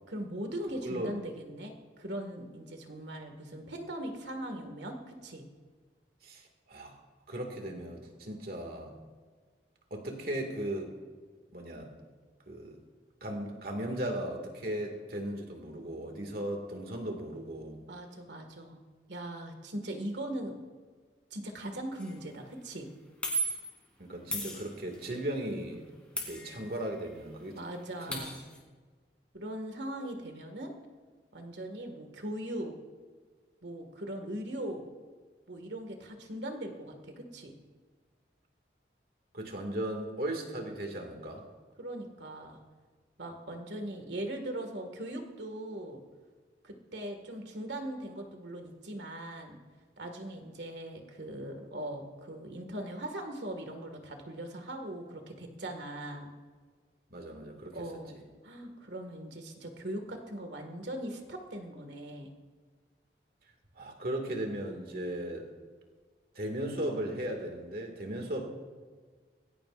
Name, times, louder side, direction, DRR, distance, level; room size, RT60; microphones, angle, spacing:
voice 1, 0.1-5.4 17.9-18.8 19.1-20.5 21.3-22.9 27.5-28.3 29.3-30.7 31.3-32.7 33.6-34.8 35.5-37.5 41.8-42.6 43.2-46.0 46.6-49.6 50.0-56.3 57.7-58.2 58.4-62.3, right 1 dB, 80° right, 5 dB, 2.0 m, -40 dB
voice 2, 6.2-6.9 7.3-8.9 9.9-10.9 11.5-11.9 12.5-12.8 13.2-17.8 24.0-25.9 26.2-27.6 28.0-28.2 39.3-41.4 57.1-57.9 63.8-65.5 66.3-68.4, right 1 dB, 55° right, 3 dB, 2.2 m, -37 dB
sound 1, 22.0-22.2 23.2-23.8 24.3-25.1 26.2-27.0 27.3-27.4 27.7-28.6, right 2 dB, 5° left, 3.2 m, -36 dB
21.0 x 16.0 x 2.6 m, 1.5 s
head